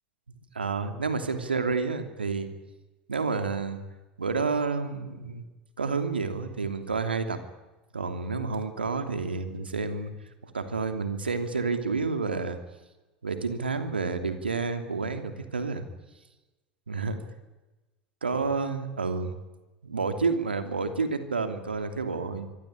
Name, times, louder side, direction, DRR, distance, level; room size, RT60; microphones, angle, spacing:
voice 1, 0.5-2.5 3.1-3.8 4.2-5.4 5.8-7.4 7.9-10.1 10.4-12.6 13.2-15.8 16.9-17.2 18.2-19.3 19.8-22.5, right 4 dB, 85° right, 7 dB, 3.0 m, -29 dB
25.0 x 24.5 x 8.9 m, 1.1 s
figure-of-eight pair, 75°, 5 cm